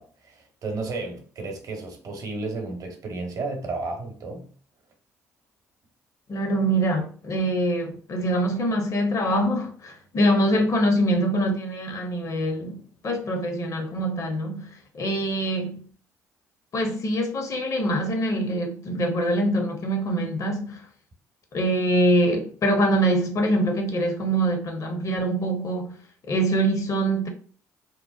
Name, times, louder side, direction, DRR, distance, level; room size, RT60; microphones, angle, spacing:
voice 1, 0.0-4.5, right 3 dB, 45° right, 0.8 m, -33 dB
voice 2, 6.3-12.8 13.0-15.9 16.7-20.9 21.5-25.9 26.3-27.3, right 1 dB, 45° left, 0.7 m, -24 dB
2.9 x 2.0 x 2.3 m
hypercardioid pair, 50°, 8 cm